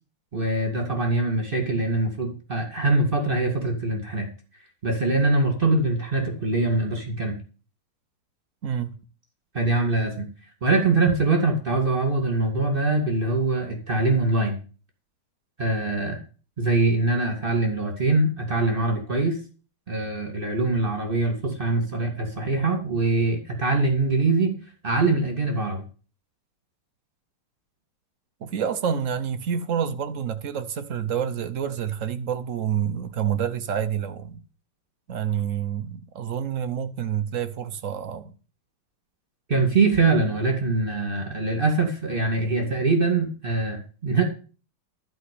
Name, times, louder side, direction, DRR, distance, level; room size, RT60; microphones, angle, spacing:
voice 1, 0.3-4.3 4.8-7.4 9.5-10.3 10.6-14.6 15.6-16.2 16.6-19.4 19.9-24.6 24.8-25.8 39.5-44.2, right 3 dB, 25° right, 2.3 m, -23 dB
voice 2, 8.6-8.9 28.4-34.4 35.1-38.3, right 8 dB, 60° right, 0.8 m, -28 dB
12.5 x 5.3 x 8.4 m
omnidirectional pair, 2.3 m